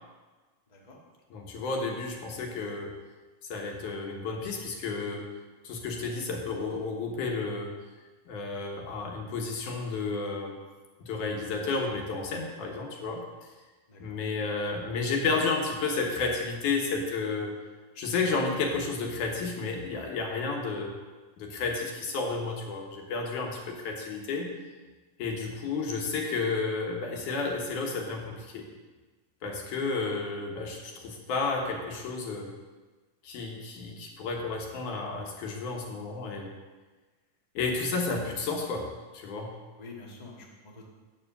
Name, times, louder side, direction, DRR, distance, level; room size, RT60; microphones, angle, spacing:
voice 1, 0.7-1.0 13.9-14.2 25.5-25.6 39.8-40.9, left 3 dB, 85° left, -3 dB, 0.3 m, -48 dB
voice 2, 1.3-2.9 3.5-5.3 5.6-7.7 8.3-10.5 11.0-13.2 14.0-17.6 18.0-20.9 21.4-24.5 25.2-28.7 29.4-32.5 33.2-36.5 37.5-39.6, left 4 dB, 70° left, 1 dB, 2.7 m, -32 dB
8.1 x 7.2 x 6.8 m, 1.3 s
omnidirectional pair, 4.0 m